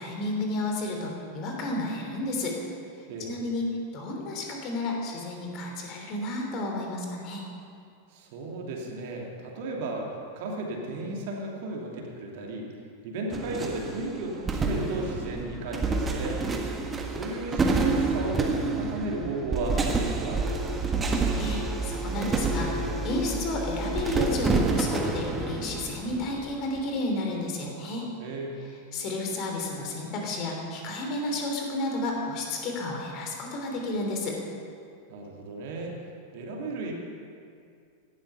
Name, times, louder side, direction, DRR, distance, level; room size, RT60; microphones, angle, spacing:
voice 1, 0.0-2.6 3.2-3.7 3.9-7.4 21.3-28.0 28.9-34.4, left 2 dB, 40° left, 1 dB, 3.1 m, -32 dB
voice 2, 8.1-12.7 13.0-16.4 17.1-20.4 28.2-28.8 35.1-36.0 36.3-36.9, right 2 dB, 50° right, 0 dB, 2.6 m, -34 dB
sound 1, 13.3-26.8, right 3 dB, 20° right, 1.5 m, -28 dB
17.0 x 12.0 x 5.6 m, 2.3 s
figure-of-eight pair, 90°, 0 cm